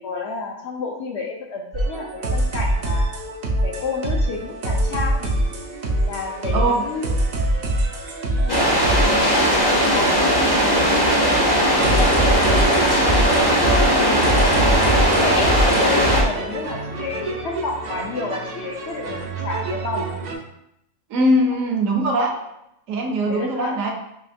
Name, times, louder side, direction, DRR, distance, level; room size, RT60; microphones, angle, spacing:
voice 1, 0.0-3.1 3.6-5.4 6.1-7.0 8.3-13.1 13.6-19.2 19.4-20.1 23.3-23.9, left 3 dB, 65° left, 0 dB, 0.7 m, -30 dB
sound 1, 1.7-20.3, right 1 dB, 55° right, 0.4 m, -25 dB
sound 2, 8.5-16.2, equal, 25° left, 0.5 m, -18 dB
voice 2, 21.1-22.4 22.9-23.9, right 1 dB, 70° right, 1 dB, 1.0 m, -20 dB
4.9 x 3.0 x 2.5 m, 0.80 s
omnidirectional pair, 1.5 m